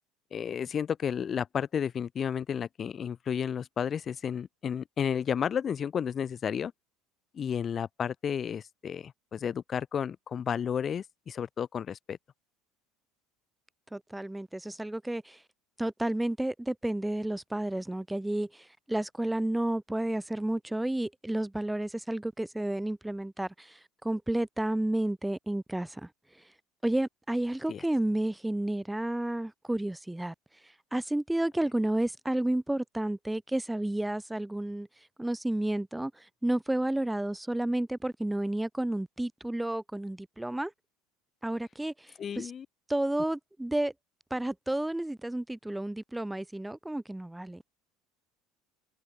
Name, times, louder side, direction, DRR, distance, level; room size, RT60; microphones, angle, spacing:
voice 1, 0.3-6.7 7.3-12.2 27.7-27.8 42.2-42.7, left 8 dB, 40° left, 1.1 m, -32 dB
voice 2, 13.9-15.4 15.8-26.1 26.8-30.3 30.9-34.9 35.2-40.7 41.4-42.5 42.9-43.9 44.3-47.6, right 1 dB, 5° right, 1.1 m, -31 dB
hypercardioid pair, 85°, 0 cm